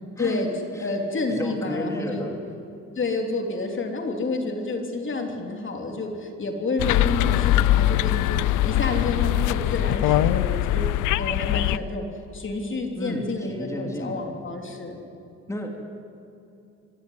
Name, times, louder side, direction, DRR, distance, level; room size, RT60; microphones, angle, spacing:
voice 1, 0.2-0.5 0.8-2.3 2.9-10.9 11.2-12.1 12.3-15.0, left 3 dB, 40° left, 3 dB, 3.3 m, -29 dB
voice 2, 1.3-2.3 12.9-14.2 15.5-15.9, equal, 10° left, 2 dB, 2.7 m, -32 dB
sound 1, 6.8-11.8, left 14 dB, 90° left, 0.6 m, -22 dB
23.0 x 16.0 x 9.4 m, 2.8 s
cardioid pair, 90°, 30 cm